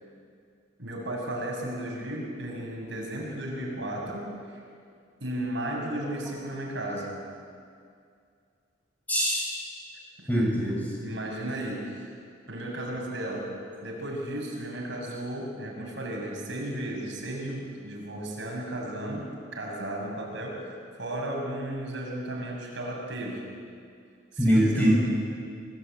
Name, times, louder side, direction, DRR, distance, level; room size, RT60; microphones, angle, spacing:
voice 1, 0.8-4.6 5.2-7.2 10.2-10.3 11.0-12.1 12.5-13.5 13.8-23.5 24.3-24.9, right 1 dB, 65° right, -2 dB, 6.6 m, -34 dB
voice 2, 9.1-9.5 10.3-11.0 24.4-24.9, equal, 10° left, -4 dB, 6.7 m, -23 dB
25.5 x 18.5 x 9.1 m, 2.3 s
head